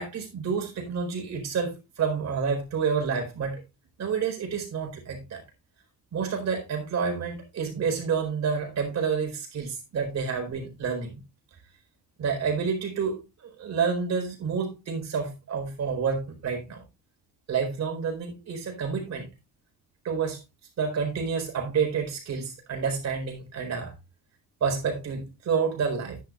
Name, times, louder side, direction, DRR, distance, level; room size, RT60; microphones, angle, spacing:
voice 1, 0.0-3.6 4.0-5.4 6.1-11.2 12.2-16.8 17.5-19.3 20.0-20.4 20.8-23.9 24.6-26.2, right 6 dB, 45° right, 4.3 m, -29 dB
11.0 x 10.5 x 2.4 m
cardioid pair, 165°, 36 cm